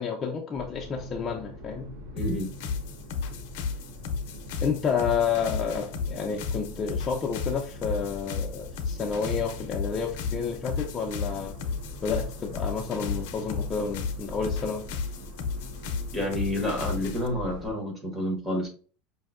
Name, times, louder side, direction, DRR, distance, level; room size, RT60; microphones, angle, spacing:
voice 1, 0.0-1.9 4.6-11.5 12.0-14.8, left 6 dB, 20° left, 1 dB, 0.4 m, -30 dB
sound 1, 0.5-17.7, left 1 dB, 80° right, 0.9 m, -42 dB
voice 2, 2.1-2.5 16.1-18.7, equal, 10° right, 0 dB, 1.1 m, -29 dB
sound 2, 2.2-17.3, left 5 dB, 70° left, 0.6 m, -34 dB
5.4 x 2.6 x 2.4 m, 0.40 s
supercardioid pair, 160°, 0 cm